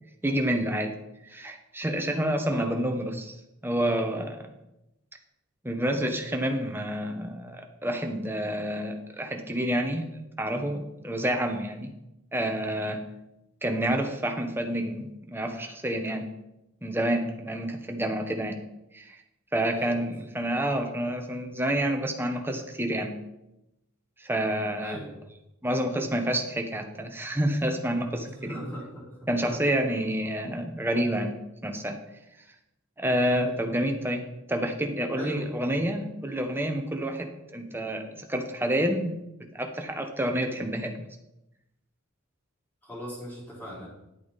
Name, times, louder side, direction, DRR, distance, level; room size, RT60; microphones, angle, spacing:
voice 1, 0.2-0.9 1.2-3.4 3.6-4.5 5.6-10.0 10.4-11.9 12.3-13.0 13.6-16.3 16.8-18.6 18.9-19.2 19.5-23.2 24.2-25.0 25.6-28.6 29.3-31.4 31.6-32.0 33.0-34.2 34.5-39.2 39.5-41.0, right 1 dB, 10° right, 4 dB, 1.1 m, -28 dB
voice 2, 2.5-2.8 19.6-19.9 24.8-25.1 28.2-29.5 35.2-35.5 42.8-43.9, equal, 10° left, -6 dB, 4.4 m, -39 dB
10.5 x 8.4 x 4.2 m, 0.89 s
head